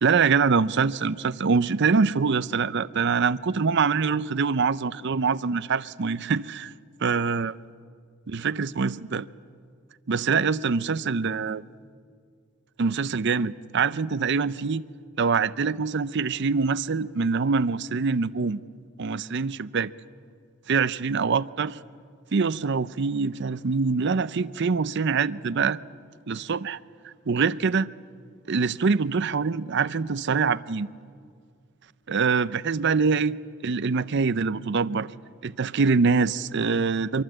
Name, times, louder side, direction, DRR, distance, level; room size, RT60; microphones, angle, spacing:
voice 1, 0.0-6.7 7.0-7.5 8.3-9.3 10.1-11.6 12.8-14.8 15.2-18.6 19.0-19.9 20.7-21.8 22.3-25.8 26.3-26.8 27.0-27.9 28.5-30.9 32.1-33.4 33.6-35.1 35.4-37.2, right 5 dB, 60° right, 0.6 m, -24 dB
24.0 x 23.5 x 7.8 m
head